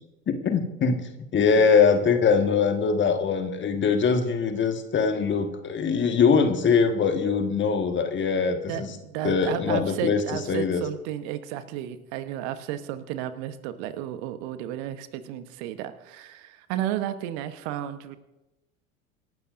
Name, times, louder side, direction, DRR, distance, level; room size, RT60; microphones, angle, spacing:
voice 1, 0.3-1.0 1.3-8.9 9.2-10.2 10.5-10.8, left 5 dB, 25° left, 6 dB, 1.7 m, -22 dB
voice 2, 8.7-18.2, right 12 dB, 50° right, 11 dB, 1.1 m, -33 dB
26.5 x 12.0 x 2.6 m, 0.99 s
figure-of-eight pair, 80°, 42 cm